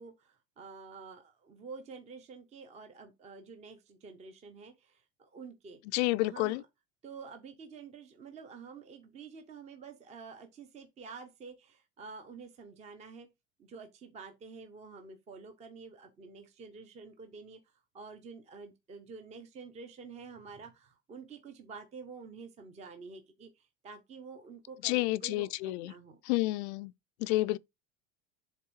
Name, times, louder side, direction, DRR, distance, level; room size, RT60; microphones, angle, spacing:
voice 1, 0.0-5.8 6.2-6.7 7.0-13.3 13.6-26.2, right 4 dB, 20° right, 0.7 m, -49 dB
voice 2, 5.9-6.6 24.8-25.9 26.3-26.9 27.2-27.6, left 20 dB, 85° left, 0.5 m, -29 dB
7.4 x 3.5 x 4.6 m
cardioid pair, 160°, 32 cm